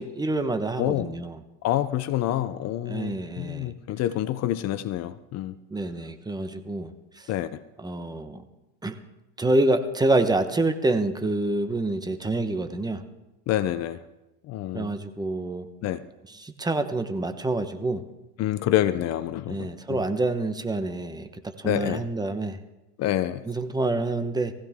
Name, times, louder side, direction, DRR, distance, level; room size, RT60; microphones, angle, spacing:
voice 1, 0.0-1.4 2.9-3.7 5.7-7.3 7.8-8.4 8.8-9.0 9.4-13.0 14.7-15.7 16.3-18.0 19.5-21.3 21.6-22.6 23.4-24.5, right 2 dB, 10° right, 8 dB, 1.1 m, -27 dB
voice 2, 0.8-1.1 1.6-5.6 7.3-7.6 13.5-14.0 14.5-14.9 15.8-16.0 18.4-20.0 21.6-22.0 23.0-23.4, left 13 dB, 50° left, 14 dB, 0.7 m, -27 dB
19.5 x 15.5 x 3.6 m, 0.98 s
supercardioid pair, 120°, 33 cm